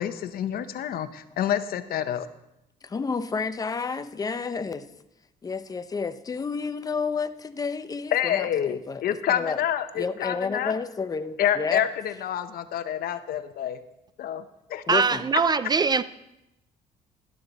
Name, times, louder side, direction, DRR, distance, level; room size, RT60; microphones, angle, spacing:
voice 1, 0.0-2.3 8.1-10.8 11.4-13.8 14.2-14.4 14.7-14.8, left 10 dB, 60° left, 0.8 m, -27 dB
voice 2, 2.8-4.9 5.4-9.0 9.3-9.6 9.9-11.8 14.9-15.3, left 5 dB, 20° left, 0.7 m, -30 dB
voice 3, 14.9-16.0, right 4 dB, 25° right, 0.4 m, -22 dB
12.5 x 11.5 x 4.1 m
cardioid pair, 110°, 17 cm